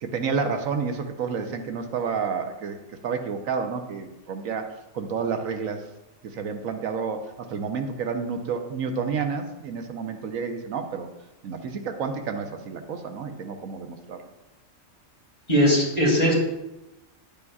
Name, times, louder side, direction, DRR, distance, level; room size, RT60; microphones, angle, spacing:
voice 1, 0.0-2.8 3.0-4.7 4.9-5.8 6.2-11.1 11.4-14.2, right 5 dB, 80° right, 6 dB, 1.2 m, -30 dB
voice 2, 15.5-16.3, equal, 30° left, -4 dB, 2.7 m, -19 dB
11.0 x 8.7 x 2.4 m, 0.96 s
omnidirectional pair, 1.4 m